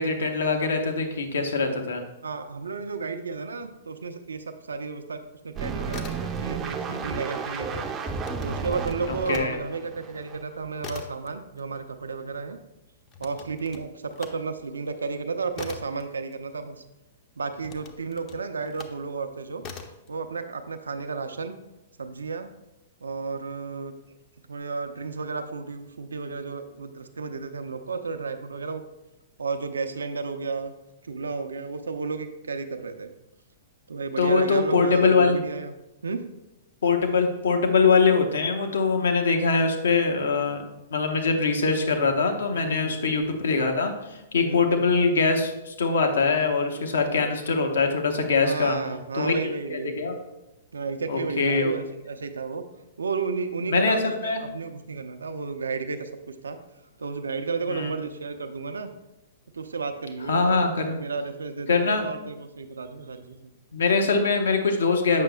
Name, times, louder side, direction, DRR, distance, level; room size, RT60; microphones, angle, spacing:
voice 1, 0.0-2.0 9.1-9.6 34.2-35.4 36.8-40.6 40.9-48.8 49.1-49.3 49.7-50.2 51.1-51.7 53.7-54.4 57.7-57.9 60.3-61.0 61.7-62.0 63.7-65.2, left 4 dB, 70° left, 4 dB, 0.9 m, -23 dB
voice 2, 2.2-7.8 8.4-12.6 13.2-16.8 17.4-19.6 20.1-21.5 22.0-22.5 23.0-23.9 24.5-28.8 29.4-30.7 31.0-33.1 33.9-35.7 36.0-36.2 42.5-43.0 44.3-44.7 48.4-50.0 50.7-52.6 53.0-56.6 57.0-58.9 59.5-63.5, right 4 dB, 75° right, 8 dB, 0.5 m, -32 dB
sound 1, 5.6-10.4 10.9-11.0, right 5 dB, 20° right, 0.5 m, -33 dB
sound 2, 5.9-6.7 7.0-9.5 9.9-16.9 17.6-19.0 19.6-20.1, left 6 dB, 35° left, 0.6 m, -43 dB
7.5 x 5.9 x 2.2 m, 0.96 s
figure-of-eight pair, 110°, 0 cm